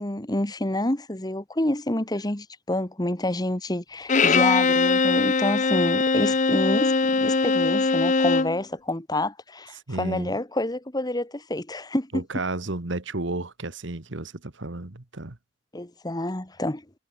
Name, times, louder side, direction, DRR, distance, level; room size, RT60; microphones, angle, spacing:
voice 1, 0.0-12.2 15.7-16.8, left 1 dB, 20° left, 1.5 m, -28 dB
Bowed string instrument, 4.1-8.6, left 4 dB, 40° left, 0.9 m, -21 dB
voice 2, 9.9-10.3 12.1-15.4, right 2 dB, 65° right, 1.5 m, -32 dB
head